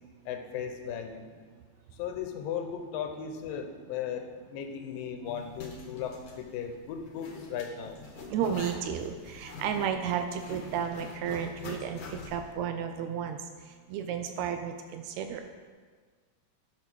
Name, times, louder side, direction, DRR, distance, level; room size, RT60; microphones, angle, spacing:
voice 1, 0.3-1.3 2.0-8.0, left 8 dB, 90° left, 6 dB, 2.6 m, -36 dB
Zipper (clothing), 5.3-12.5, left 3 dB, 55° left, 1.4 m, -45 dB
voice 2, 8.3-13.4 13.9-15.4, right 8 dB, 85° right, 7 dB, 1.6 m, -32 dB
11.5 x 5.5 x 6.2 m, 1.5 s
omnidirectional pair, 3.9 m